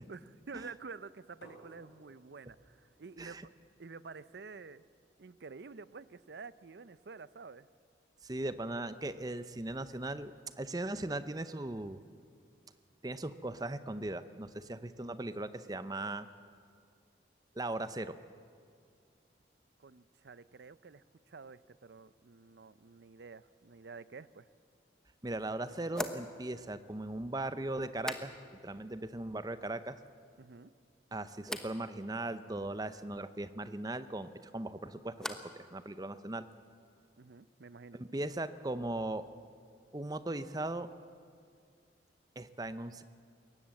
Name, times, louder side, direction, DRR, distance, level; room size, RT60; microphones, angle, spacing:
voice 1, 0.1-3.5 3.8-4.8 5.2-7.7 19.8-24.5 30.4-30.7 37.2-38.0, right 4 dB, 65° right, 17 dB, 0.5 m, -49 dB
sound 1, 1.4-7.1, equal, 85° left, 4.5 m, -63 dB
voice 2, 8.2-10.3 10.6-12.0 13.0-16.3 17.6-18.2 25.2-28.3 28.6-30.0 31.1-36.5 37.9-39.2 39.9-40.9 42.4-43.0, right 2 dB, 20° right, 12 dB, 0.6 m, -38 dB
sound 2, 24.7-24.8 25.9-28.8 29.0-29.6 30.0-30.6 31.4-31.8 34.2-35.6 35.9-36.5, left 1 dB, 5° left, 0.9 m, -45 dB
22.0 x 18.0 x 7.7 m, 2.2 s
head